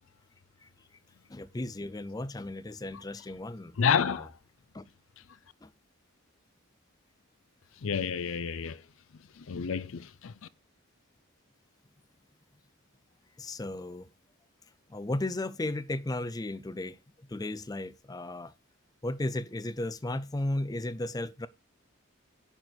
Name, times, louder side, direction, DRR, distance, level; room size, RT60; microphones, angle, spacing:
voice 1, 1.3-4.2 4.7-4.8 5.6-5.7 13.4-14.1 14.9-18.5 19.0-21.5, left 1 dB, 15° left, 0.4 m, -35 dB
voice 2, 3.8-4.4 7.8-8.9 9.1-10.3, left 6 dB, 70° left, 0.5 m, -30 dB
10.5 x 4.4 x 6.6 m
head